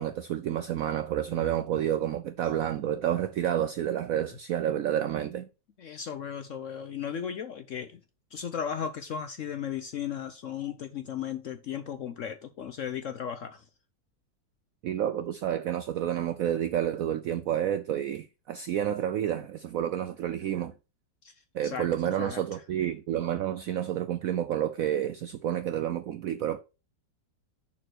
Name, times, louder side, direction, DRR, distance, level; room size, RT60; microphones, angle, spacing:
voice 1, 0.0-5.5 14.8-20.7 21.5-26.6, right 10 dB, 80° right, 0.7 m, -29 dB
voice 2, 5.8-8.0 8.3-13.6 21.2-21.3 21.6-22.4, left 8 dB, 70° left, 0.7 m, -36 dB
6.6 x 4.2 x 6.1 m
omnidirectional pair, 2.0 m